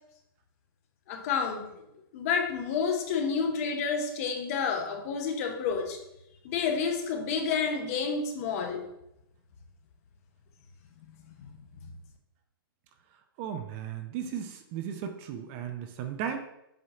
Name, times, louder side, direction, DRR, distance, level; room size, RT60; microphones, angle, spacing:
voice 1, 1.1-1.7 2.1-6.0 6.4-8.8 11.3-11.6, left 5 dB, 40° left, 4 dB, 0.9 m, -29 dB
voice 2, 13.4-16.4, right 8 dB, 30° right, 6 dB, 0.5 m, -35 dB
7.6 x 2.8 x 4.8 m, 0.85 s
hypercardioid pair, 145°, 12 cm